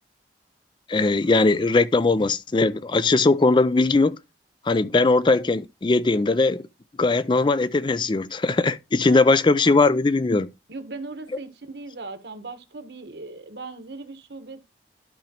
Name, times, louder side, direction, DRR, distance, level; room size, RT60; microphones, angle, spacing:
voice 1, 0.9-4.2 4.7-6.6 7.0-10.5, left 3 dB, 25° left, 0.4 m, -20 dB
voice 2, 9.0-9.4 10.7-14.6, right 3 dB, 70° right, 1.3 m, -38 dB
12.0 x 5.0 x 2.9 m
head